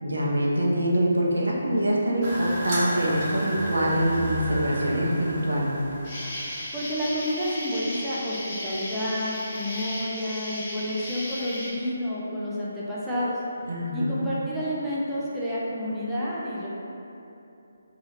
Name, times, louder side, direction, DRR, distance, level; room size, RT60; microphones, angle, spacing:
voice 1, 0.0-5.7 13.7-14.3, equal, 80° right, -3 dB, 0.5 m, -24 dB
sound 1, 2.2-7.3, right 1 dB, 35° right, 0.7 m, -33 dB
Insect, 6.0-11.7, left 1 dB, 30° left, 0.7 m, -35 dB
voice 2, 6.7-13.4 13.9-16.7, equal, 5° right, -11 dB, 0.4 m, -29 dB
2.7 x 2.3 x 2.8 m, 2.8 s
figure-of-eight pair, 150°, 0 cm